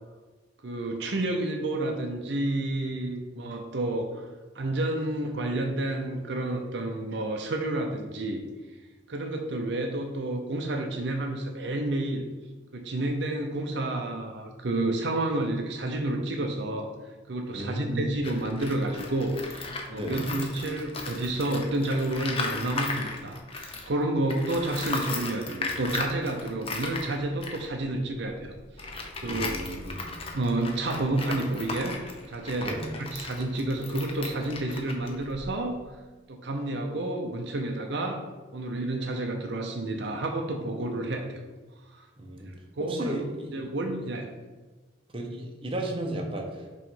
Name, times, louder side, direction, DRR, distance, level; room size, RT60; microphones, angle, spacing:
voice 1, 0.6-4.3 4.5-8.4 9.1-12.2 12.7-16.9 17.3-28.5 28.8-29.5 30.3-35.8 36.3-38.2 38.5-41.4 41.9-42.1 42.5-43.2 43.5-44.3, right 2 dB, 60° right, 3 dB, 0.6 m, -30 dB
voice 2, 17.5-18.1 19.9-20.3 29.2-30.0 32.6-32.9 42.2-42.5 42.8-43.5 45.1-46.8, right 1 dB, 30° right, 1 dB, 0.8 m, -34 dB
Tools, 18.1-24.0 24.3-35.7, left 3 dB, 30° left, 0.7 m, -37 dB
5.6 x 3.1 x 5.4 m, 1.2 s
head